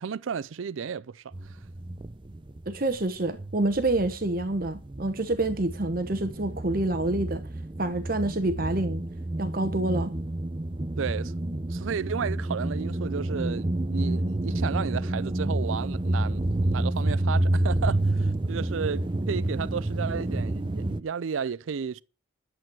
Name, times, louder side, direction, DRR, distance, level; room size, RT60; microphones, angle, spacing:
voice 1, 0.0-1.6 11.0-11.3 11.7-22.0, right 6 dB, 90° right, 0.4 m, -33 dB
sound 1, 1.3-3.0 3.2-21.0, right 1 dB, 25° right, 0.5 m, -29 dB
voice 2, 2.7-7.4 7.8-9.0 9.4-10.1, right 2 dB, 45° right, 1.0 m, -27 dB
11.5 x 7.8 x 6.0 m
head